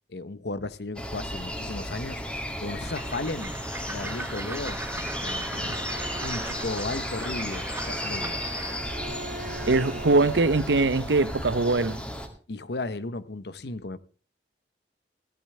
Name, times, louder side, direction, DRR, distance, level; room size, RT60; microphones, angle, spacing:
voice 1, 0.1-2.2 2.6-3.6 3.9-5.9 6.2-8.4 9.4-9.7 12.5-14.0, left 2 dB, 65° left, 0.9 m, -35 dB
sound 1, 1.0-12.3, equal, 5° left, 2.3 m, -34 dB
Train, 2.8-8.9, right 2 dB, 10° right, 1.1 m, -39 dB
Bowed string instrument, 5.3-10.8, right 2 dB, 45° right, 0.9 m, -43 dB
voice 2, 9.7-12.0, right 3 dB, 75° right, 0.8 m, -22 dB
17.5 x 13.5 x 3.3 m
head